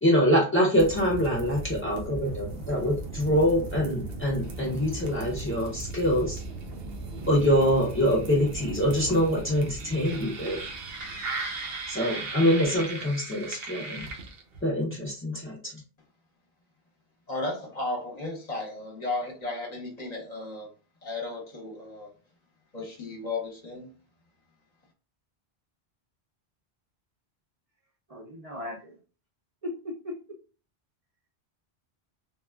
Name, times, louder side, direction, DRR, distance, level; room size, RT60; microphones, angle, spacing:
voice 1, 0.0-6.4 7.3-10.6 11.9-14.1 14.6-15.8, equal, 20° left, -5 dB, 0.3 m, -25 dB
sound 1, 0.8-14.7, right 3 dB, 70° right, 0.9 m, -37 dB
voice 2, 17.3-20.7 21.0-22.1 22.7-23.9, left 2 dB, 45° left, -1 dB, 0.8 m, -34 dB
voice 3, 28.1-28.9 29.6-30.2, left 1 dB, 45° right, -2 dB, 0.5 m, -37 dB
3.5 x 2.2 x 2.2 m, 0.37 s
omnidirectional pair, 1.0 m